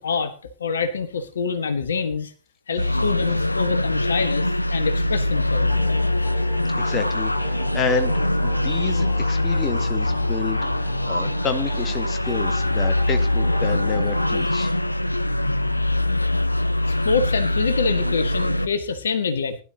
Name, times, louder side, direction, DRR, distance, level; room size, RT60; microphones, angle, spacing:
voice 1, 0.0-2.3 2.7-5.8 16.9-19.6, left 5 dB, 70° left, 10 dB, 1.4 m, -26 dB
sound 1, 2.8-18.7, left 1 dB, 85° left, 0.5 m, -23 dB
sound 2, 5.7-14.4, equal, 5° left, 4.5 m, -42 dB
voice 2, 6.8-14.7, left 5 dB, 30° left, 8 dB, 1.6 m, -30 dB
20.0 x 11.5 x 2.8 m, 0.35 s
figure-of-eight pair, 90°, 0 cm